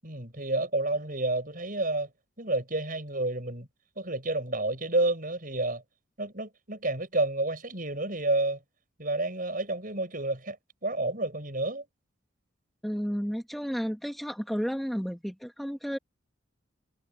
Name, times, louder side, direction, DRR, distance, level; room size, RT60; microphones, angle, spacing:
voice 1, 0.0-2.1 2.4-3.7 4.0-5.8 6.2-8.6 9.0-10.6 10.8-11.8, right 2 dB, 40° right, 7.7 m, -30 dB
voice 2, 12.8-16.0, equal, ahead, 2.2 m, -32 dB
head